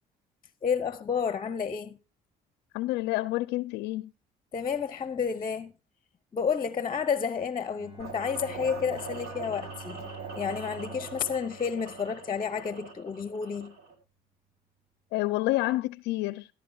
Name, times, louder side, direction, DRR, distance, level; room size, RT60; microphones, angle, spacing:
voice 1, 0.6-2.0 4.5-5.7 6.3-10.1 10.3-13.8, left 6 dB, 30° left, 0.7 m, -30 dB
voice 2, 2.7-4.1 15.1-16.5, left 18 dB, 85° left, 0.4 m, -28 dB
Bowed string instrument, 7.7-12.7, right 3 dB, 25° right, 1.6 m, -47 dB
sound 1, 8.0-13.9, right 5 dB, 70° right, 3.2 m, -42 dB
14.0 x 12.0 x 2.3 m
cardioid pair, 110°, 17 cm